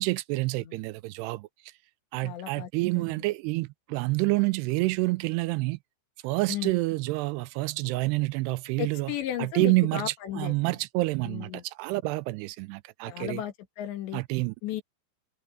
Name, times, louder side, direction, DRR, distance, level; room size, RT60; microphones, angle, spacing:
voice 1, 0.0-1.5 2.1-5.8 6.2-9.1 9.4-13.4 14.1-14.5, right 22 dB, 85° right, 2.5 m, -28 dB
voice 2, 0.5-0.9 2.2-2.7 2.9-3.2 6.5-6.7 8.8-10.8 11.2-11.6 13.1-14.2 14.6-14.8, left 12 dB, 85° left, 4.2 m, -35 dB
omnidirectional pair, 4.9 m